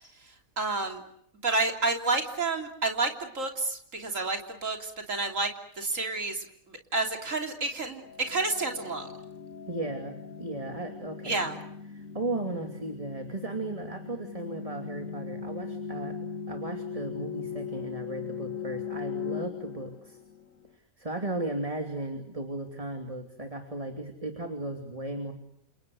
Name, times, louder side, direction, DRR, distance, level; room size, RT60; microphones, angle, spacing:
voice 1, 0.6-1.0 1.4-5.5 5.8-6.5 6.9-9.1 11.2-11.6, right 3 dB, 65° right, 4 dB, 3.7 m, -29 dB
sound 1, 8.0-20.7, left 6 dB, 70° left, 2.1 m, -39 dB
voice 2, 9.7-11.5 11.9-16.2 16.5-20.2 21.0-25.3, right 2 dB, 25° right, 5 dB, 2.9 m, -36 dB
30.0 x 28.5 x 6.5 m, 0.72 s
omnidirectional pair, 1.4 m